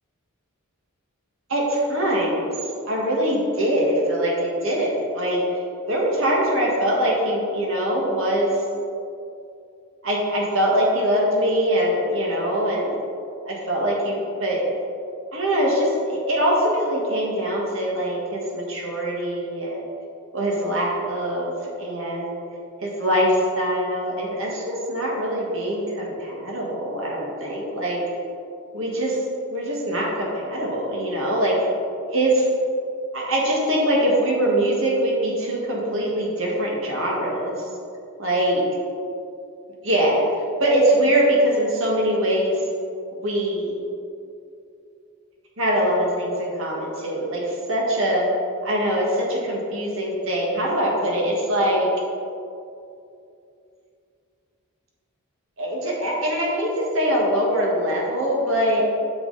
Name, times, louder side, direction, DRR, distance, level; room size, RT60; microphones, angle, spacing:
voice 1, 1.5-2.5 2.8-5.4 5.9-8.6 10.0-13.0 13.4-14.6 15.3-19.8 20.3-21.5 21.8-22.4 22.8-28.0 28.7-29.2 29.5-31.5 32.1-32.5 33.1-37.7 38.2-38.6 39.8-40.3 40.6-42.6 43.2-43.9 45.6-48.3 48.6-51.9 55.6-58.8, right 1 dB, 60° right, -3 dB, 1.8 m, -23 dB
8.9 x 6.0 x 4.1 m, 2.6 s
head